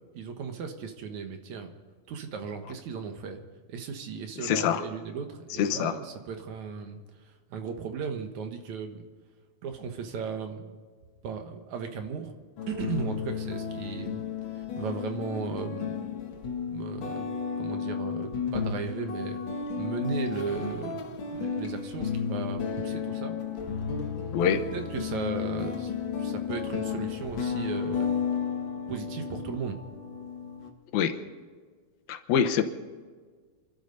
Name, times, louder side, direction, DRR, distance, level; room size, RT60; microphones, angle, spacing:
voice 1, 0.1-1.7 2.1-3.4 3.7-9.1 9.6-10.7 11.2-12.3 12.7-14.2 14.5-16.0 16.7-19.4 19.8-23.4 24.7-25.9 26.2-28.2 28.9-29.8, right 6 dB, 60° right, 5 dB, 2.4 m, -36 dB
voice 2, 4.4-4.8 5.6-5.9 24.3-24.6 30.9-31.2 32.1-32.6, left 8 dB, 80° left, 6 dB, 2.8 m, -25 dB
sound 1, 12.6-30.7, left 6 dB, 55° left, 1.3 m, -33 dB
28.0 x 12.5 x 4.0 m, 1.5 s
omnidirectional pair, 4.4 m